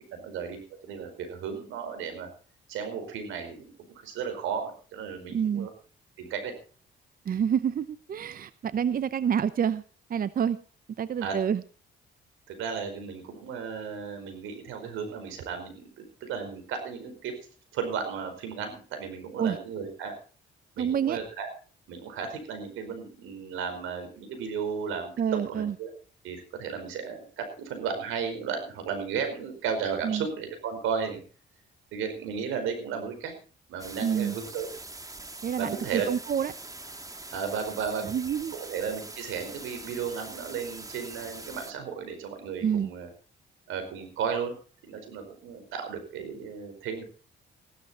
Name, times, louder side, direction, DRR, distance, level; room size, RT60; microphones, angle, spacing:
voice 1, 0.1-0.6 0.8-2.3 2.7-3.7 4.0-5.7 6.2-6.5 11.2-11.4 12.5-17.3 17.7-20.2 20.7-21.5 21.9-25.9 26.2-31.2 31.9-33.3 33.7-34.7 35.6-36.1 37.3-38.1 38.5-43.1 43.7-44.5 44.8-47.0, right 6 dB, 90° right, 7 dB, 4.8 m, -34 dB
voice 2, 5.3-5.7 7.2-9.8 10.1-10.6 11.0-11.6 19.4-19.6 20.8-21.2 25.2-25.7 30.0-30.3 34.0-34.3 35.4-36.5 38.0-38.5 42.6-42.9, right 8 dB, 45° right, 15 dB, 0.8 m, -27 dB
sound 1, 33.8-41.7, right 2 dB, 15° right, 1.9 m, -43 dB
16.0 x 12.5 x 4.3 m, 0.40 s
cardioid pair, 90°, 20 cm